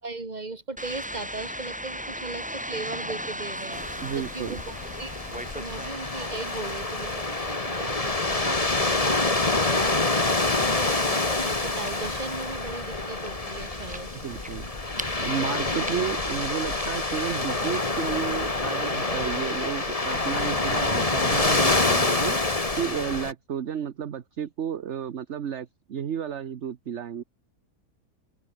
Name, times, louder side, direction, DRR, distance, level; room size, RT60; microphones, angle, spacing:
voice 1, 0.0-14.1 15.8-16.1, right 3 dB, 25° right, 2.4 m, -38 dB
sound 1, 0.8-19.3, equal, 5° right, 3.8 m, -40 dB
sound 2, 3.7-23.3, left 2 dB, 20° left, 2.0 m, -27 dB
voice 2, 4.0-4.6 14.2-14.7 15.2-22.4 22.8-27.2, right 8 dB, 50° right, 1.2 m, -32 dB
open air
omnidirectional pair, 1.7 m